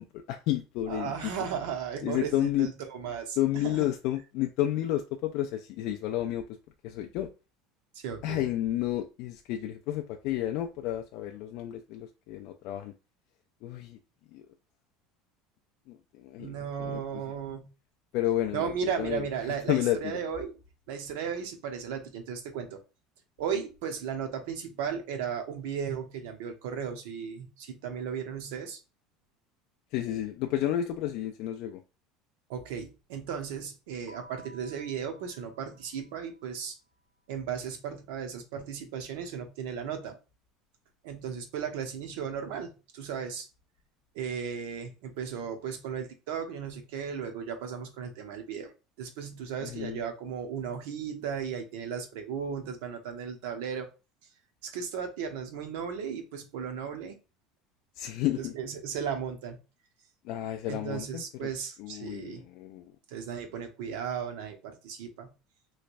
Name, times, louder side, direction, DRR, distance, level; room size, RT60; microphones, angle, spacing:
voice 1, 0.0-1.1 2.0-2.7 3.4-6.5 6.8-7.3 8.2-12.9 13.6-14.0 14.3-14.4 15.9-17.0 18.1-18.7 19.0-19.3 19.7-20.2 29.9-31.8 49.6-50.0 58.0-58.5 60.2-61.5 61.8-62.9, left 13 dB, 55° left, 0.4 m, -31 dB
voice 2, 0.9-3.9 7.9-8.4 16.4-17.7 18.5-20.6 20.9-22.8 23.4-28.8 32.5-36.8 37.3-40.2 41.0-43.5 44.1-48.7 49.0-53.9 54.6-57.2 58.4-59.6 60.7-62.4 63.1-65.3, right 7 dB, 75° right, 0.9 m, -35 dB
Keyboard (musical), 34.1-36.6, right 1 dB, 25° right, 0.8 m, -55 dB
3.2 x 3.0 x 2.6 m
cardioid pair, 165°, 0 cm